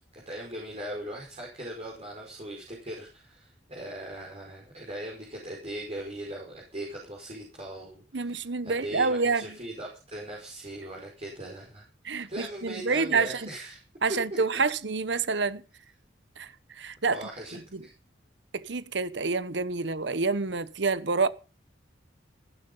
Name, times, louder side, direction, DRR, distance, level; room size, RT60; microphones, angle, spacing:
voice 1, 0.1-8.4 8.6-13.8 17.1-17.9, right 1 dB, 35° right, 5.3 m, -40 dB
voice 2, 8.1-9.6 12.0-13.5 14.0-15.6 16.4-17.2 17.5-17.8 18.5-21.3, right 4 dB, 65° right, 1.0 m, -28 dB
16.5 x 12.0 x 5.5 m
head